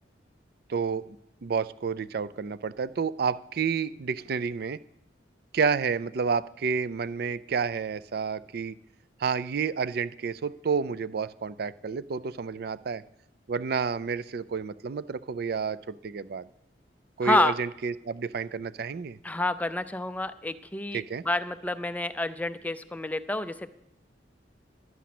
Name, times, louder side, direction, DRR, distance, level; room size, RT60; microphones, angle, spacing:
voice 1, 0.7-1.2 1.4-4.8 5.5-8.8 9.2-13.0 13.5-16.5 17.2-19.2 20.9-21.2, right 5 dB, 55° right, 17 dB, 0.4 m, -30 dB
voice 2, 17.2-17.5 19.2-23.7, left 2 dB, 10° left, 12 dB, 0.4 m, -28 dB
11.0 x 9.5 x 5.9 m, 0.79 s
head